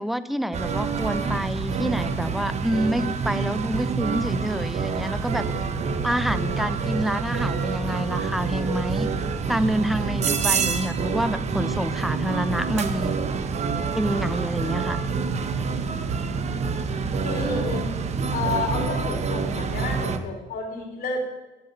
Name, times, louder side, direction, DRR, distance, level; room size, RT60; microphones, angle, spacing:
voice 1, 0.0-5.4 6.0-9.1 9.5-13.2 14.0-15.0, equal, ahead, 14 dB, 0.4 m, -27 dB
sound 1, 0.5-20.2, right 5 dB, 40° right, 0.8 m, -27 dB
sound 2, 5.3-19.3, right 6 dB, 70° right, 0.9 m, -47 dB
voice 2, 17.2-17.9 18.3-21.2, left 3 dB, 60° left, 0 dB, 3.4 m, -30 dB
11.0 x 7.3 x 5.4 m, 1.1 s
cardioid pair, 110°, 17 cm